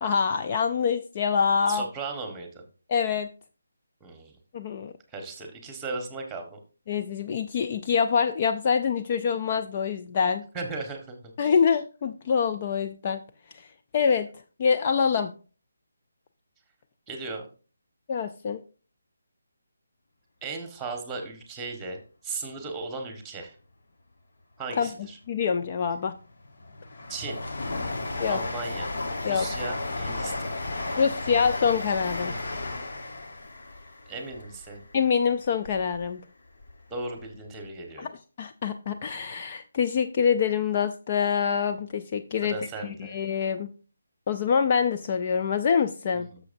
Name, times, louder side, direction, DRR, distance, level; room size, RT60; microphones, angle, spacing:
voice 1, 0.0-1.9 2.9-3.3 4.5-4.9 6.9-10.4 11.4-13.2 13.9-14.3 14.6-15.3 18.1-18.6 24.8-24.9 25.3-26.1 28.2-28.4 29.2-29.5 31.0-32.3 34.9-36.2 38.0-38.1 38.4-42.6 42.8-43.7 44.3-46.3, left 6 dB, 30° left, 8 dB, 0.4 m, -25 dB
voice 2, 1.7-2.6 4.0-4.3 5.1-6.6 10.5-11.5 17.1-17.5 20.4-23.5 24.6-25.2 27.1-27.4 28.2-28.9 29.2-30.5 34.1-34.8 36.9-38.1 42.4-43.1 46.1-46.4, right 3 dB, 10° right, 5 dB, 1.4 m, -36 dB
Train, 25.9-36.1 36.5-37.4 37.6-37.7, left 2 dB, 55° left, 1.2 m, -34 dB
11.0 x 6.8 x 2.6 m, 0.37 s
figure-of-eight pair, 150°, 0 cm